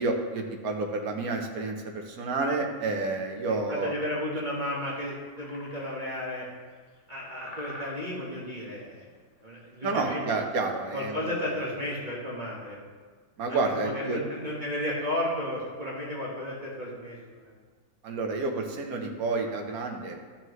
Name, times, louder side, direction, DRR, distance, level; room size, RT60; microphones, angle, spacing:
voice 1, 0.0-4.0 9.8-11.5 13.4-14.2 18.0-20.2, right 3 dB, 85° right, 2 dB, 1.5 m, -30 dB
voice 2, 3.5-6.5 7.1-9.1 9.4-10.2 10.9-12.8 13.5-17.5, left 1 dB, 35° right, -6 dB, 1.8 m, -33 dB
sound 1, 4.8-4.9 5.4-6.3 6.7-7.2 7.4-8.4 8.8-9.1 9.6-10.2 10.5-10.6 10.9-11.0 11.4-11.8, left 1 dB, 30° left, 1.1 m, -46 dB
12.0 x 7.3 x 3.2 m, 1.5 s
omnidirectional pair, 1.5 m